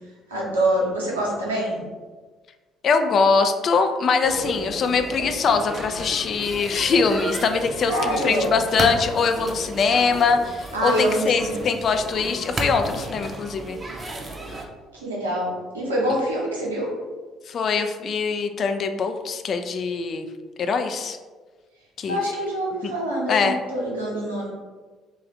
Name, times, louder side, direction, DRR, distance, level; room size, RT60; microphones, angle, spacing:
voice 1, 0.3-1.8 7.9-8.6 10.7-11.7 14.9-16.9 22.1-24.5, right 1 dB, 80° right, -4 dB, 0.8 m, -25 dB
voice 2, 2.8-14.1 14.5-14.6 17.5-20.3 20.6-21.2 22.0-22.2 22.8-22.9 23.3-23.6, left 5 dB, 45° left, 7 dB, 0.3 m, -23 dB
sound 1, 4.2-14.7, right 2 dB, 25° right, 0.6 m, -33 dB
3.1 x 2.4 x 3.8 m, 1.3 s
figure-of-eight pair, 50°, 0 cm